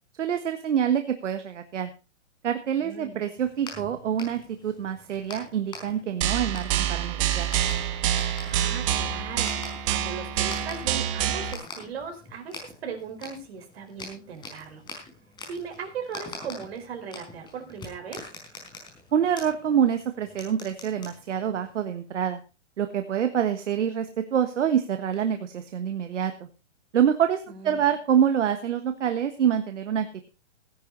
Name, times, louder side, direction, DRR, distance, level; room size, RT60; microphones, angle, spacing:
voice 1, 0.2-1.9 2.4-7.5 19.1-22.4 22.8-26.5 26.9-30.3, right 9 dB, 75° right, 8 dB, 1.5 m, -26 dB
voice 2, 2.7-3.3 8.4-14.8 15.5-18.2 27.5-27.8, right 6 dB, 55° right, 4 dB, 4.8 m, -38 dB
sound 1, 3.4-21.8, left 3 dB, 10° left, 4.9 m, -45 dB
sound 2, 6.2-11.5, right 10 dB, 25° right, 1.3 m, -27 dB
17.0 x 10.5 x 4.0 m, 0.30 s
hypercardioid pair, 165°, 36 cm